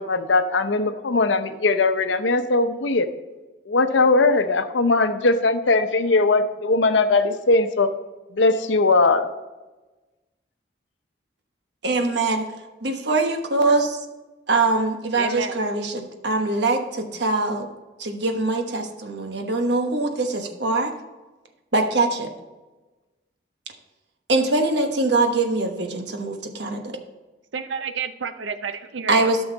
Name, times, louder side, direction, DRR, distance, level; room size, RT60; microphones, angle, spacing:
voice 1, 0.0-3.1 3.7-7.9 8.3-9.3, left 3 dB, 85° left, 9 dB, 0.7 m, -20 dB
voice 2, 11.8-12.4 12.8-14.0 14.5-17.7 18.0-20.9 21.7-22.3 24.3-27.0 29.1-29.4, right 3 dB, 70° right, 4 dB, 1.2 m, -23 dB
voice 3, 15.2-15.6 27.5-29.3, right 5 dB, 85° right, 11 dB, 0.6 m, -30 dB
12.5 x 6.3 x 4.0 m, 1.2 s
head